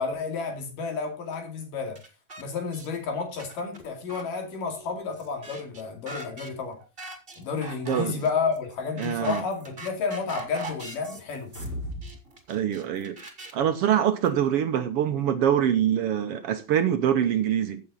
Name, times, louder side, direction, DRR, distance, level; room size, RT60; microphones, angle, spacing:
voice 1, 0.0-2.0 2.4-6.8 7.4-11.5, left 5 dB, 75° left, 4.1 m, -31 dB
sound 1, 1.3-1.4 1.9-2.5 2.7-2.9 3.2-14.3, right 2 dB, 20° right, 2.0 m, -42 dB
voice 2, 7.9-8.2 9.0-9.4 12.5-13.2 13.5-17.8, right 9 dB, 75° right, 1.4 m, -24 dB
sound 2, 11.3-12.2 12.5-12.6, equal, 40° left, 6.4 m, -35 dB
15.5 x 7.8 x 4.0 m
omnidirectional pair, 3.8 m